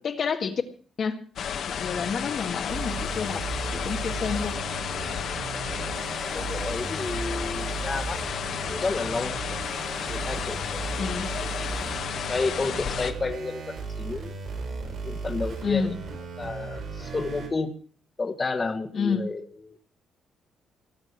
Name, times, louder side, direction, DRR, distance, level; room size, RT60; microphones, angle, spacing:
voice 1, 0.0-0.6 1.0-1.2 1.7-3.4 3.7-4.6 11.0-11.3 15.6-16.0 18.9-19.3, left 6 dB, 50° left, 5 dB, 1.8 m, -29 dB
sound 1, 1.4-13.1, left 8 dB, 65° left, 1.9 m, -32 dB
sound 2, 2.7-17.5, right 4 dB, 55° right, 6.5 m, -36 dB
voice 2, 6.3-8.2 8.6-9.6 10.1-10.8 11.4-11.5 12.2-14.3 14.7-15.9 16.4-17.7 18.2-19.4 19.7-19.8, left 3 dB, 30° left, 6 dB, 1.7 m, -31 dB
19.0 x 7.2 x 8.1 m, 0.43 s
cardioid pair, 90°, 0 cm